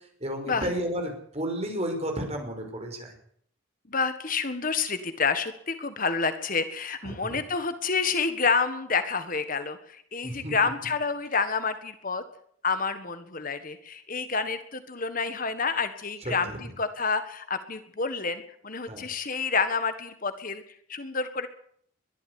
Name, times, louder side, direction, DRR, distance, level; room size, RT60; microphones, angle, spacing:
voice 1, 0.2-3.1 7.0-7.4 10.2-10.5 16.3-16.6 18.9-19.0, equal, 30° right, 4 dB, 5.6 m, -32 dB
voice 2, 3.9-12.2 12.6-20.6 20.9-21.5, left 5 dB, 40° left, 10 dB, 1.6 m, -29 dB
22.5 x 12.5 x 9.6 m, 0.64 s
head